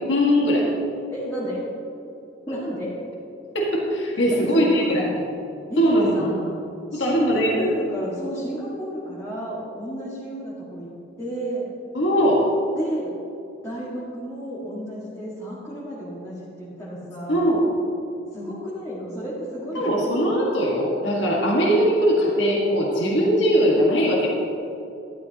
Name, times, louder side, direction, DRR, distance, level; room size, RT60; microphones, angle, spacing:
voice 1, 0.1-0.7 3.5-5.1 5.8-6.1 6.9-7.7 11.9-12.5 17.3-17.7 19.8-24.3, equal, 75° left, -3 dB, 1.8 m, -20 dB
voice 2, 1.1-1.6 2.5-2.9 4.3-5.2 5.7-6.6 6.9-10.9 11.2-11.7 12.8-13.1 13.6-17.5 18.3-20.0, equal, 15° left, -9 dB, 1.9 m, -32 dB
12.5 x 12.0 x 3.0 m, 2.7 s
head